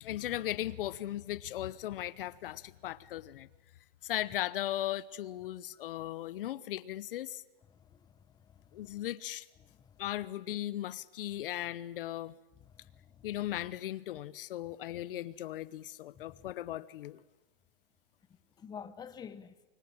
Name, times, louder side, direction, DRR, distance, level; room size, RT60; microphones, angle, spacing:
voice 1, 0.0-3.5 4.0-7.4 8.7-9.5 10.0-12.3 13.2-17.2, left 13 dB, 65° left, 0.9 m, -37 dB
voice 2, 8.5-9.0 9.6-10.0 12.6-13.3 16.1-16.5 18.6-19.5, left 7 dB, 15° left, 1.1 m, -49 dB
25.0 x 22.5 x 8.9 m
hypercardioid pair, 145°, 29 cm